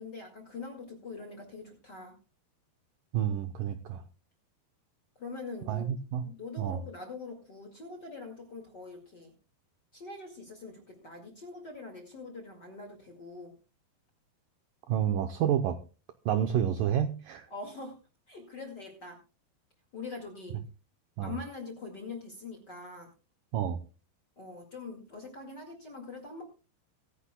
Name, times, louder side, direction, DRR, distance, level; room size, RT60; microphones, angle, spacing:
voice 1, 0.0-2.1 5.2-9.3 9.9-13.5 17.5-18.0 18.3-19.2 19.9-20.6 21.2-23.1 24.4-26.4, left 3 dB, 35° left, 3 dB, 1.8 m, -43 dB
voice 2, 3.1-4.0 5.7-6.2 6.6-6.8 14.9-15.8 16.3-17.5 21.2-21.4 23.5-23.8, right 9 dB, 80° right, 8 dB, 2.0 m, -29 dB
23.5 x 10.0 x 2.3 m, 0.33 s
omnidirectional pair, 4.9 m